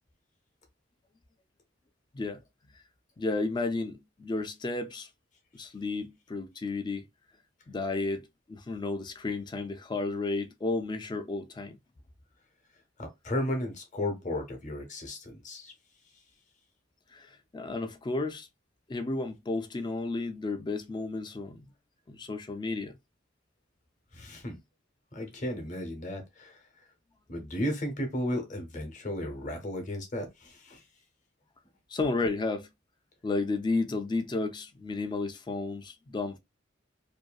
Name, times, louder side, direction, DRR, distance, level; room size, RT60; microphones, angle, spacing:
voice 1, 3.2-5.1 5.5-7.1 7.7-11.8 17.1-18.5 18.9-21.7 22.1-23.0 31.9-32.7 33.2-36.4, left 3 dB, 20° left, 0.3 m, -32 dB
voice 2, 13.0-15.7 24.1-24.6 25.1-26.6 27.3-30.8, left 1 dB, 40° left, 0.8 m, -34 dB
2.6 x 2.4 x 2.2 m
head